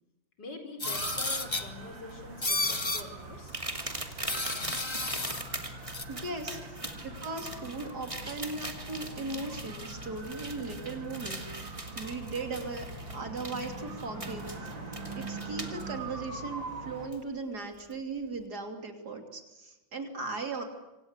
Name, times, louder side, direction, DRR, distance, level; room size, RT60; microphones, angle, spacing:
voice 1, 0.4-3.6 6.3-6.6 7.5-8.2, left 2 dB, 60° left, 5 dB, 5.0 m, -46 dB
sound 1, 0.8-1.7 2.4-3.0 4.3-5.4 5.9-6.0, left 2 dB, 15° left, 1.3 m, -31 dB
sound 2, 0.8-17.1, right 2 dB, 70° right, 4.7 m, -43 dB
sound 3, 3.5-15.8 17.1-17.2 17.8-17.9, right 1 dB, 15° right, 2.5 m, -41 dB
voice 2, 6.1-6.6 7.0-12.9 13.1-14.7 15.2-20.6, right 3 dB, 55° right, 4 dB, 3.6 m, -38 dB
26.5 x 26.5 x 8.3 m, 1.0 s
omnidirectional pair, 2.1 m